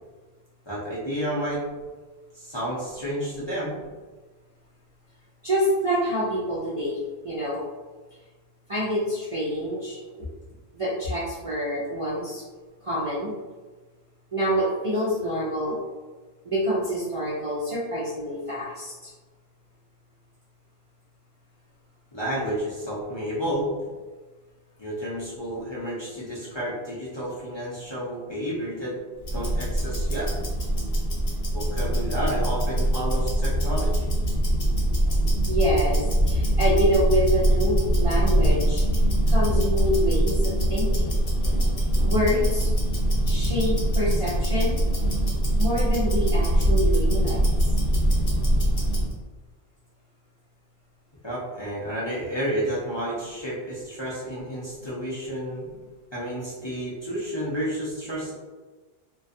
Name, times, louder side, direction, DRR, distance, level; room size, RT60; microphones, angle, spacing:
voice 1, 0.7-1.6 2.3-3.8 22.1-23.7 24.8-29.0 29.3-30.3 31.5-34.0 51.2-55.7 56.1-58.3, equal, 35° left, -8 dB, 0.5 m, -31 dB
voice 2, 5.4-7.6 8.7-10.3 10.7-12.4 12.8-13.3 14.3-15.8 16.4-19.1 35.5-38.8 39.3-41.2 42.0-42.7 43.2-44.8 45.6-47.7, equal, 45° right, -8 dB, 0.4 m, -27 dB
Tick-tock, 29.2-49.1, equal, 60° left, 1.0 m, -23 dB
2.3 x 2.3 x 2.5 m, 1.3 s
omnidirectional pair, 1.0 m